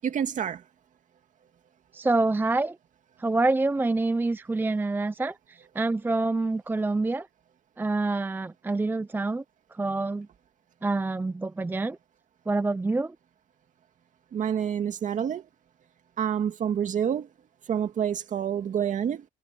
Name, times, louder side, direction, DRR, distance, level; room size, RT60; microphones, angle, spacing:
voice 1, 0.0-0.6 14.3-15.4 16.2-17.3 17.7-19.2, right 8 dB, 50° right, 2.2 m, -28 dB
voice 2, 1.9-2.8 3.2-7.3 7.8-9.4 9.7-10.3 10.8-12.0 12.5-13.2, right 3 dB, 10° right, 0.6 m, -26 dB
cardioid pair, 110°, 17 cm